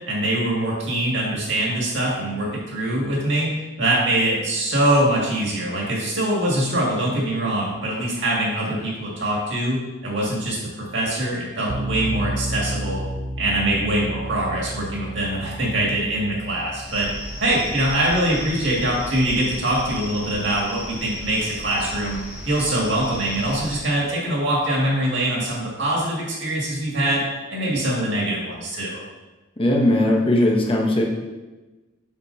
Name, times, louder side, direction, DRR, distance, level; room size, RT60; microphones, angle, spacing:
voice 1, 0.1-13.0 13.4-17.1 17.4-22.2 22.5-29.0, right 1 dB, 65° right, -4 dB, 2.2 m, -23 dB
sound 1, 11.7-20.6, right 1 dB, 35° right, 0.4 m, -33 dB
sound 2, 16.9-23.8, equal, 10° right, 1.3 m, -35 dB
voice 2, 29.6-31.0, left 1 dB, 30° left, 0 dB, 0.9 m, -18 dB
7.1 x 6.6 x 2.8 m, 1.1 s
head